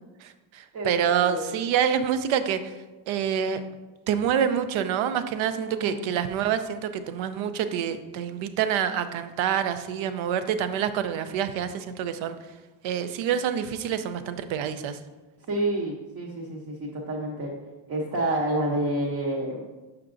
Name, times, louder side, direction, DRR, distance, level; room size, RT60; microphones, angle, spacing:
voice 1, 0.2-2.7 3.1-3.6 4.1-12.3 12.8-15.0, right 8 dB, 70° right, 11 dB, 0.6 m, -27 dB
voice 2, 0.7-1.5 5.7-6.1 15.5-17.5 17.9-19.7, right 1 dB, 35° right, -3 dB, 0.8 m, -29 dB
6.5 x 5.9 x 2.5 m, 1.2 s
cardioid pair, 160°, 49 cm